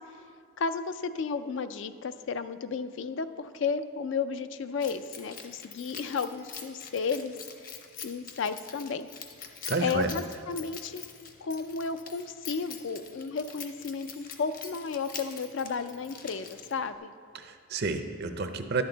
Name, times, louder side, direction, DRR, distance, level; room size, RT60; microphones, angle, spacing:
voice 1, 0.6-7.4 8.0-9.1 9.8-11.0 11.4-17.1, left 5 dB, 60° left, 11 dB, 0.4 m, -33 dB
Keys jangling, 4.8-16.9, left 6 dB, 40° left, 0.8 m, -45 dB
voice 2, 9.7-10.1 17.3-18.8, right 3 dB, 50° right, 8 dB, 0.6 m, -30 dB
11.0 x 8.7 x 3.9 m, 2.4 s
head